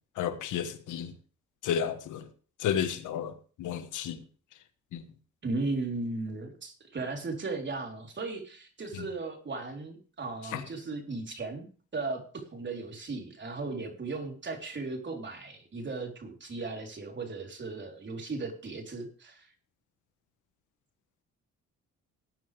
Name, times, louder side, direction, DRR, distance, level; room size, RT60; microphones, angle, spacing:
voice 1, 0.2-1.1 1.6-2.3 2.6-4.2 4.9-5.0 8.9-9.0 10.5-10.6, left 9 dB, 80° left, 1.6 m, -32 dB
voice 2, 5.4-11.7 11.9-19.5, right 3 dB, 35° right, 4.0 m, -36 dB
19.0 x 9.3 x 3.5 m
cardioid pair, 90°, 30 cm